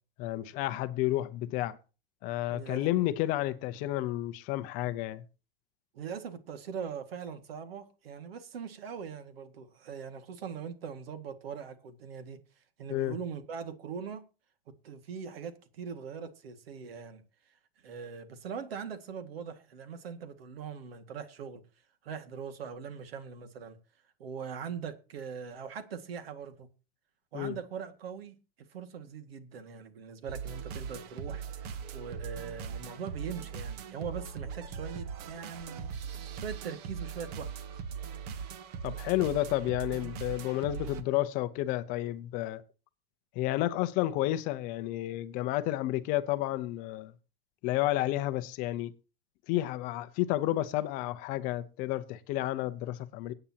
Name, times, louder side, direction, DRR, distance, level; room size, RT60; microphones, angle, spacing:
voice 1, 0.2-1.8 2.2-5.2 12.9-13.1 27.3-27.6 38.8-42.6 43.4-47.1 47.6-48.9 49.5-53.3, left 15 dB, 30° left, 0.6 m, -31 dB
voice 2, 2.5-2.9 3.7-3.9 5.9-12.4 12.8-14.2 14.8-17.2 17.8-21.6 22.0-23.8 24.2-26.7 27.3-28.3 28.7-35.9 36.3-37.5, right 6 dB, 80° right, 2.1 m, -41 dB
sound 1, 30.3-41.0, right 7 dB, 45° right, 1.2 m, -40 dB
23.0 x 8.8 x 2.9 m
supercardioid pair, 160°, 29 cm